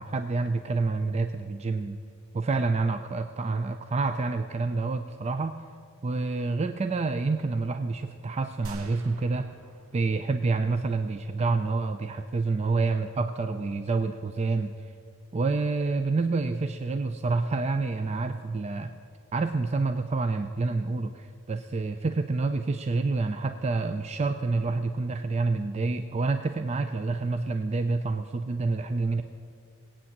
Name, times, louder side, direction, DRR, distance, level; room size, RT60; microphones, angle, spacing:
voice 1, 0.0-2.0 2.3-5.5 6.0-9.5 9.9-14.7 15.3-18.9 19.3-29.2, right 3 dB, 30° right, 8 dB, 0.4 m, -28 dB
sound 1, 8.6-11.5, right 1 dB, 65° right, 1.0 m, -47 dB
19.0 x 8.7 x 7.3 m, 2.3 s
head